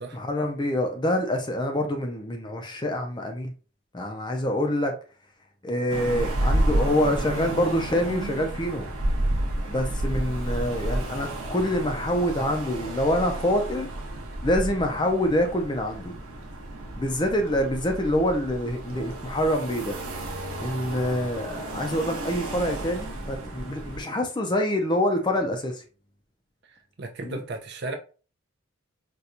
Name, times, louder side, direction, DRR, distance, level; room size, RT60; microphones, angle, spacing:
voice 1, 0.1-3.5 3.9-4.9 5.6-8.9 9.7-13.9 14.4-16.1 17.0-20.0 20.6-25.8 27.2-27.4, left 1 dB, 20° left, 0.4 m, -26 dB
sound 1, 5.9-24.0, right 1 dB, 75° right, 0.8 m, -31 dB
voice 2, 27.0-28.0, right 2 dB, 50° right, 0.5 m, -34 dB
4.2 x 2.3 x 2.5 m
head